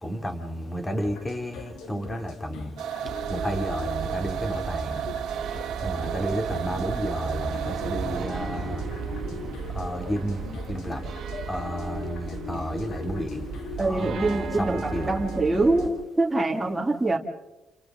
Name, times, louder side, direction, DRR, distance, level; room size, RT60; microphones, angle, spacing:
voice 1, 0.0-2.7 3.3-5.0 5.8-8.8 9.7-10.4 10.7-11.0 11.5-13.4 13.8-15.2, equal, 15° left, 4 dB, 3.1 m, -31 dB
sound 1, 1.0-16.0, left 5 dB, 85° left, 2.8 m, -40 dB
sound 2, 2.8-8.4, right 9 dB, 85° right, 1.7 m, -33 dB
sound 3, 3.0-15.9, right 7 dB, 65° right, 1.9 m, -36 dB
voice 2, 13.8-14.8 15.0-17.2, right 2 dB, 15° right, 0 dB, 2.3 m, -24 dB
29.5 x 29.5 x 3.8 m, 1.0 s
cardioid pair, 90°, 0 cm